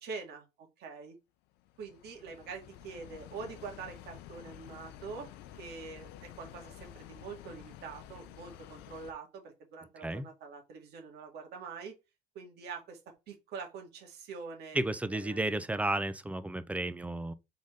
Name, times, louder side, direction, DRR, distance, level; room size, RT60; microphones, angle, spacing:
voice 1, 0.0-1.2 1.8-11.9 12.4-13.0 13.3-14.8 15.1-15.4, right 5 dB, 75° right, 1.9 m, -45 dB
sound 1, 1.5-9.1, left 11 dB, 90° left, 0.5 m, -51 dB
voice 2, 14.7-17.3, right 2 dB, 10° right, 0.5 m, -32 dB
4.0 x 3.6 x 3.7 m
cardioid pair, 110°, 17 cm